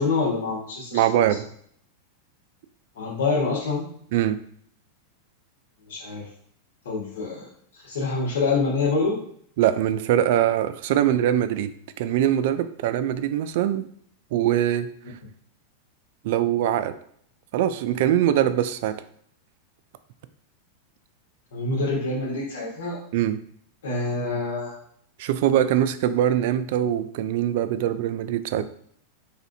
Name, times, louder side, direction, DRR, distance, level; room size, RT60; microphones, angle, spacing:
voice 1, 0.0-1.0 2.9-3.9 5.9-6.3 6.8-7.5 7.8-9.2 21.5-23.0 23.8-24.8, left 3 dB, 90° left, -3 dB, 1.5 m, -26 dB
voice 2, 0.9-1.4 4.1-4.4 9.6-11.7 12.0-13.9 14.3-14.9 16.2-16.9 17.5-19.0 23.1-23.4 25.2-28.7, right 11 dB, 55° right, 12 dB, 0.3 m, -22 dB
4.2 x 3.2 x 2.6 m, 0.63 s
supercardioid pair, 160°, 0 cm